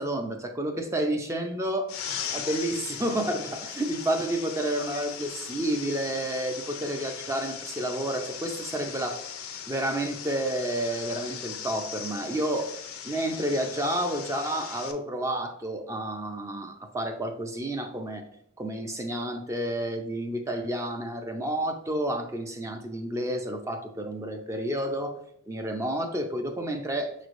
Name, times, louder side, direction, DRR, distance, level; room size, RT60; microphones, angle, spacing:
voice 1, 0.0-1.9 2.3-9.2 9.7-12.7 13.0-18.2 18.6-25.2 25.5-27.1, right 1 dB, 15° right, 5 dB, 0.4 m, -30 dB
sound 1, 1.9-14.9, left 8 dB, 75° left, 0.5 m, -39 dB
6.3 x 3.2 x 2.5 m, 0.71 s
head